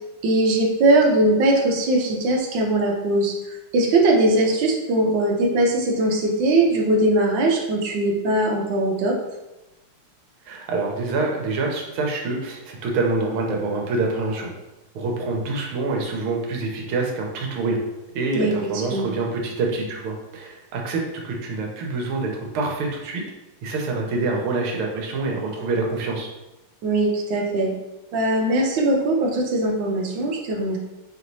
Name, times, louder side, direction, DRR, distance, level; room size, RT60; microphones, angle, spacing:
voice 1, 0.2-3.3 3.7-9.1 18.3-18.5 18.9-19.1 26.8-27.7 28.1-30.8, right 2 dB, 65° right, 0 dB, 1.3 m, -20 dB
voice 2, 10.4-14.5 14.9-17.8 18.1-23.2 23.6-26.3, right 3 dB, 85° right, 0 dB, 1.6 m, -26 dB
4.9 x 3.0 x 2.7 m, 0.99 s
omnidirectional pair, 2.3 m